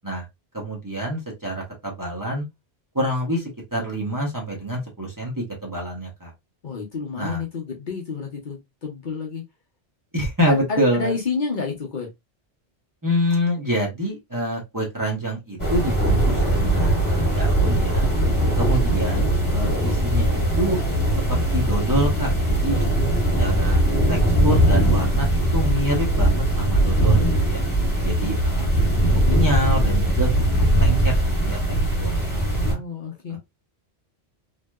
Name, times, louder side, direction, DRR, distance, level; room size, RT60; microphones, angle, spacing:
voice 1, 0.5-2.4 2.9-6.3 7.2-7.4 10.1-11.1 13.0-18.1 18.6-20.8 21.3-22.8 23.4-23.8 24.1-25.3 25.5-27.6 28.0-28.7 29.0-30.3 30.6-31.1 31.4-32.8 33.3-33.4, equal, 20° right, 1.0 m, -27 dB
voice 2, 6.6-9.4 10.5-12.1 32.6-33.4, left 5 dB, 50° left, 0.9 m, -30 dB
sound 1, 15.6-32.7, right 1 dB, 20° left, 1.3 m, -20 dB
3.1 x 2.8 x 2.3 m
omnidirectional pair, 1.1 m